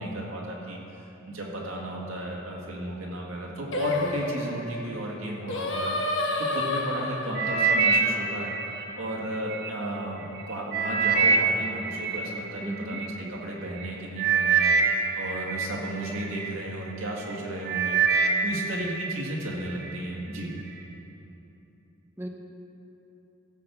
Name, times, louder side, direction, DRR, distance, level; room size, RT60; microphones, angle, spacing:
voice 1, 0.0-8.5 9.0-20.5, right 1 dB, 80° right, -2 dB, 2.1 m, -34 dB
Singing, 3.7-9.0, left 2 dB, 60° left, 1.1 m, -31 dB
sound 1, 7.4-9.7 10.2-13.1 13.8-13.9 14.2-16.6 17.1-17.4 17.7-19.2 19.5-20.0 20.6-20.7, right 5 dB, 50° right, 0.9 m, -25 dB
voice 2, 12.6-13.0 13.3-13.4 22.2-22.3, equal, 10° right, 2 dB, 0.8 m, -35 dB
15.5 x 5.5 x 7.0 m, 3.0 s
head